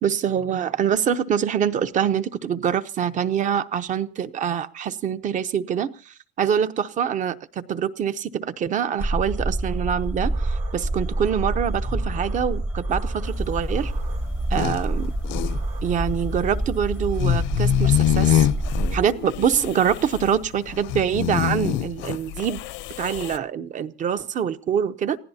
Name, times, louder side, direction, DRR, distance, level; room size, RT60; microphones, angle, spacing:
voice 1, 0.0-13.9 14.5-15.1 15.8-18.5 18.9-22.6 23.0-25.2, right 8 dB, 40° right, 13 dB, 0.8 m, -25 dB
sound 1, 9.0-19.1, right 1 dB, 10° right, 0.7 m, -27 dB
sound 2, 10.3-15.8, right 7 dB, 75° right, 5.3 m, -47 dB
Snoring snoring with stuffy nose, 13.2-23.4, left 12 dB, 75° left, 0.7 m, -25 dB
29.0 x 16.0 x 2.8 m, 0.37 s
cardioid pair, 145°, 19 cm